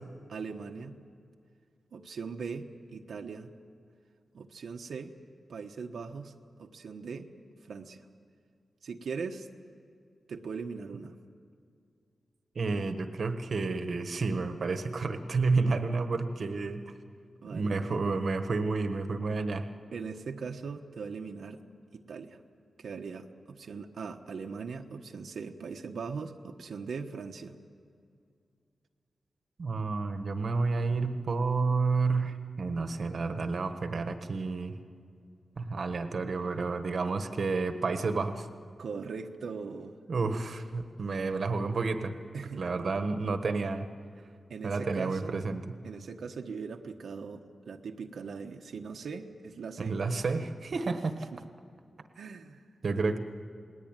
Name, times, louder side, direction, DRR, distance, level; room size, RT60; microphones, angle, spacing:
voice 1, 0.3-1.0 1.9-3.5 4.3-5.1 5.5-6.3 6.6-7.3 7.6-8.0 8.8-9.5 10.3-11.2 17.4-18.0 19.9-21.6 21.9-22.4 22.8-27.6 38.8-40.0 42.3-42.7 44.5-45.4 45.8-50.0 50.7-50.8 51.3-51.4 52.2-52.6, right 5 dB, 85° right, 3 dB, 1.2 m, -40 dB
voice 2, 12.5-16.8 17.5-19.7 29.6-34.8 35.6-38.5 40.1-42.1 42.6-43.9 44.6-45.6 49.8-51.2 52.8-53.2, right 4 dB, 55° right, 8 dB, 1.3 m, -30 dB
28.5 x 20.0 x 9.0 m, 2.3 s
wide cardioid pair, 155°, 0 cm